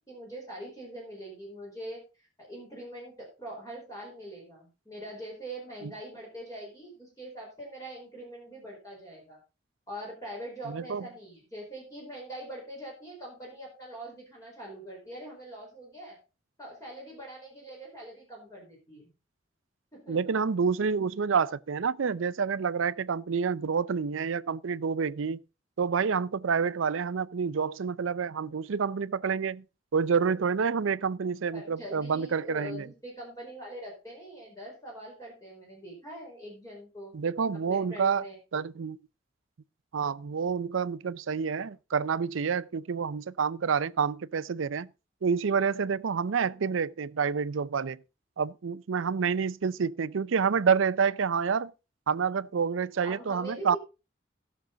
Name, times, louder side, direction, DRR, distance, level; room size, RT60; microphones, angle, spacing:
voice 1, 0.0-9.4 9.9-16.2 16.6-19.1 19.9-20.4 31.5-37.1 37.7-38.4 53.0-53.8, right 1 dB, 15° left, 4.5 m, -43 dB
voice 2, 10.7-11.0 20.1-25.4 25.8-29.6 29.9-32.9 37.1-38.3 38.5-39.0 39.9-44.9 45.2-48.0 48.4-51.7 52.1-53.8, right 6 dB, 80° right, 0.5 m, -28 dB
16.5 x 6.5 x 3.9 m
head